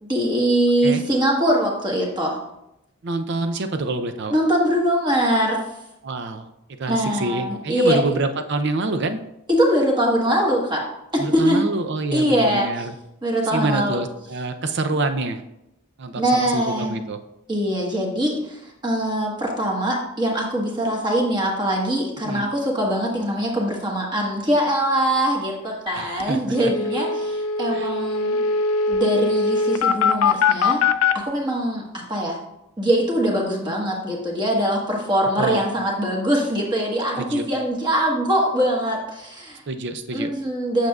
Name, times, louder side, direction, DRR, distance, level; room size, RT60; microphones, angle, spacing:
voice 1, 0.0-2.4 4.3-5.6 6.9-8.0 9.5-10.8 11.1-11.6 12.1-12.7 13.2-14.0 16.2-17.0 17.5-28.4 28.9-30.8 31.1-32.4 32.8-39.6 40.1-40.9, right 1 dB, 20° right, -1 dB, 1.4 m, -22 dB
voice 2, 3.0-4.3 6.0-6.5 6.8-9.2 11.2-13.0 13.5-15.4 16.0-17.2 22.2-22.5 25.9-26.7 27.7-27.9 35.4-35.6 37.2-37.5 39.7-40.3, right 2 dB, 55° right, 8 dB, 0.5 m, -26 dB
sound 1, 25.9-26.0 26.2-26.3 26.5-31.1, left 4 dB, 90° left, 0.5 m, -21 dB
8.4 x 6.4 x 2.4 m, 0.86 s
head